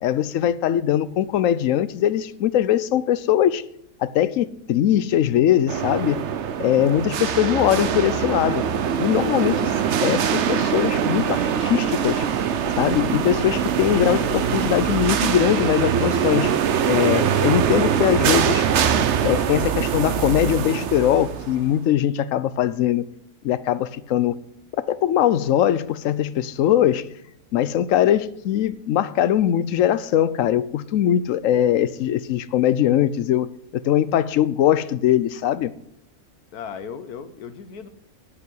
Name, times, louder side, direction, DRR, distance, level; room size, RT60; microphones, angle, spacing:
voice 1, 0.0-3.6 4.0-6.2 6.6-8.6 9.0-9.7 10.0-12.2 12.8-16.5 16.9-18.6 19.2-23.0 23.4-24.4 24.9-27.1 27.5-35.7, left 11 dB, 65° left, 0.9 m, -21 dB
sound 1, 5.7-21.7, right 8 dB, 55° right, 1.0 m, -23 dB
voice 2, 36.5-37.9, left 7 dB, 85° left, 1.5 m, -37 dB
8.5 x 8.5 x 9.2 m
omnidirectional pair, 1.6 m